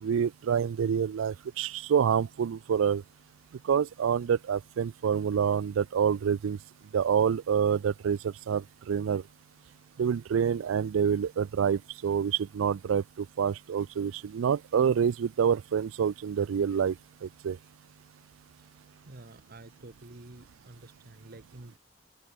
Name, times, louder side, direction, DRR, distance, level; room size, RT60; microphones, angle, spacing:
voice 1, 0.0-3.0 3.6-6.6 6.9-9.2 10.0-17.0 17.2-17.6, right 7 dB, 80° right, 0.4 m, -27 dB
voice 2, 19.1-21.8, right 2 dB, 50° right, 1.2 m, -49 dB
open air
head